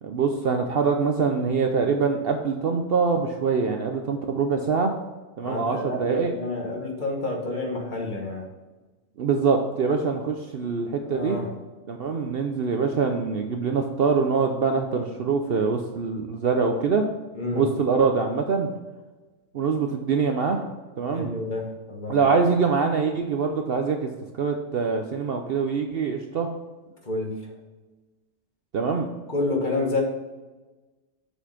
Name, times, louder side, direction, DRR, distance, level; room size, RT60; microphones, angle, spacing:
voice 1, 0.0-4.9 5.4-6.3 9.2-11.4 11.9-17.1 17.5-18.7 19.5-20.6 21.0-21.3 22.1-24.1 24.4-26.5 28.7-29.1, right 5 dB, 55° right, 4 dB, 0.7 m, -24 dB
voice 2, 5.4-8.4 11.1-11.5 17.3-17.7 21.1-22.3 27.0-27.5 29.3-30.0, left 2 dB, 40° left, 0 dB, 1.5 m, -29 dB
7.0 x 4.6 x 5.7 m, 1.2 s
omnidirectional pair, 1.4 m